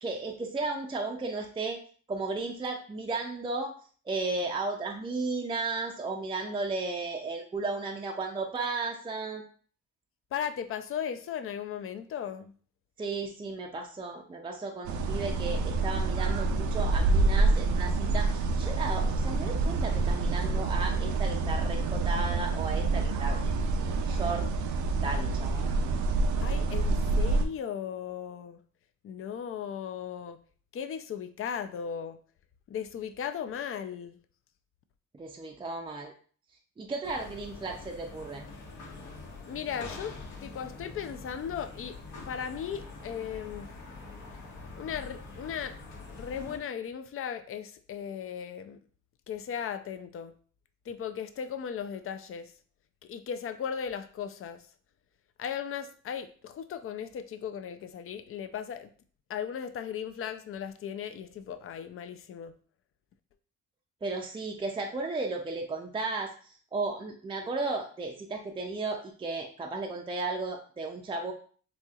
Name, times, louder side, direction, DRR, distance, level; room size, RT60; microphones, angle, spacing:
voice 1, 0.0-1.8 2.1-3.7 4.1-9.4 13.0-23.6 23.8-24.5 25.0-25.6 35.1-36.1 36.8-38.4 64.0-71.3, right 3 dB, 15° right, 2 dB, 0.4 m, -34 dB
voice 2, 10.3-12.5 26.4-28.6 29.0-30.4 30.7-32.2 32.7-34.2 39.5-40.2 40.4-42.0 42.3-43.7 44.8-45.8 46.1-48.8 49.3-50.3 50.9-52.5 53.1-54.6 55.4-58.9 59.3-62.5, left 8 dB, 50° left, 10 dB, 0.4 m, -37 dB
sound 1, 14.8-27.4, right 3 dB, 75° right, 0.5 m, -27 dB
sound 2, 37.0-46.6, left 3 dB, 80° left, 1.0 m, -45 dB
4.1 x 2.9 x 2.3 m, 0.44 s
cardioid pair, 90°, 30 cm